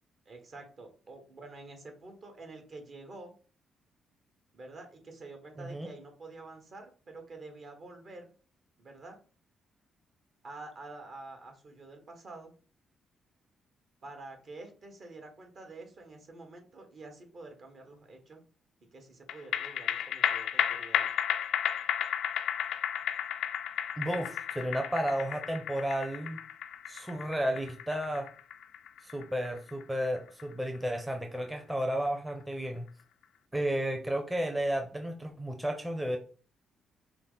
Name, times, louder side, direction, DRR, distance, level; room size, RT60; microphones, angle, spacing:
voice 1, 0.2-3.3 4.5-8.3 8.8-9.2 10.4-12.5 14.0-18.4 18.9-21.1, right 2 dB, 55° right, 4 dB, 1.3 m, -48 dB
voice 2, 5.6-5.9 24.0-26.4 26.9-28.3 29.0-32.9 33.5-36.2, right 1 dB, 10° right, 5 dB, 0.7 m, -32 dB
sound 1, 19.3-31.9 32.3-32.4, left 10 dB, 80° left, 0.3 m, -33 dB
5.6 x 2.1 x 3.9 m, 0.39 s
cardioid pair, 75°, 0 cm